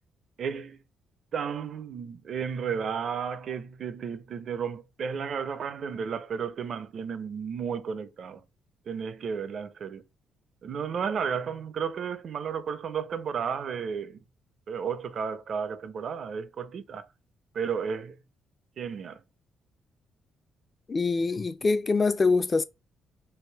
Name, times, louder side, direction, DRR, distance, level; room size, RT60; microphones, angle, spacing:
voice 1, 0.4-0.8 1.3-8.4 8.9-10.0 10.6-14.2 14.7-17.1 17.5-18.2 18.8-19.2, right 6 dB, 55° right, 0.5 m, -33 dB
voice 2, 20.9-22.6, left 4 dB, 35° left, 0.4 m, -24 dB
3.4 x 2.5 x 4.5 m
cardioid pair, 90°, 0 cm